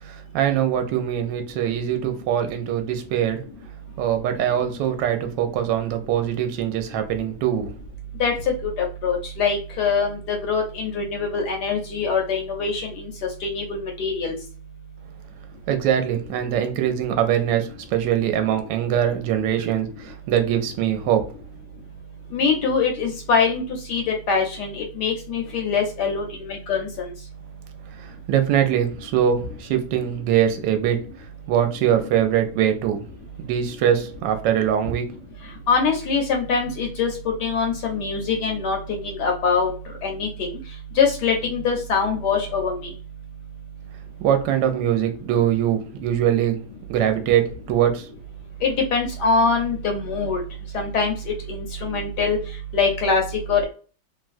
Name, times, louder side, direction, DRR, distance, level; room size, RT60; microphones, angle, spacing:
voice 1, 0.0-3.4 4.0-7.7 15.7-21.3 27.9-33.0 33.4-35.1 44.2-46.6 46.9-48.1, right 10 dB, 70° right, 1.2 m, -22 dB
voice 2, 8.6-13.1 13.4-14.3 22.3-27.1 35.7-39.7 40.0-40.5 41.0-42.9 48.6-50.4 50.7-52.4 52.7-53.2 53.5-53.6, left 5 dB, 70° left, 1.1 m, -23 dB
3.2 x 2.2 x 2.4 m
omnidirectional pair, 2.2 m